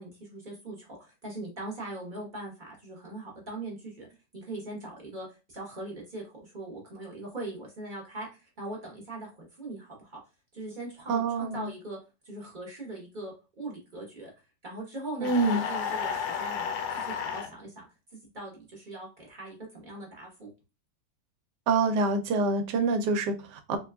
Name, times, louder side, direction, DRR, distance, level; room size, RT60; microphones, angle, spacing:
voice 1, 0.0-4.1 4.3-10.2 10.5-12.0 12.2-14.3 14.6-16.7 17.0-17.9 18.1-20.5, right 2 dB, 40° right, -2 dB, 0.8 m, -41 dB
voice 2, 11.1-11.7 15.2-15.6 21.7-23.8, right 3 dB, 80° right, 7 dB, 1.2 m, -26 dB
sound 1, 15.2-17.5, left 7 dB, 75° left, 1.2 m, -32 dB
3.9 x 2.2 x 2.2 m, 0.29 s
omnidirectional pair, 1.9 m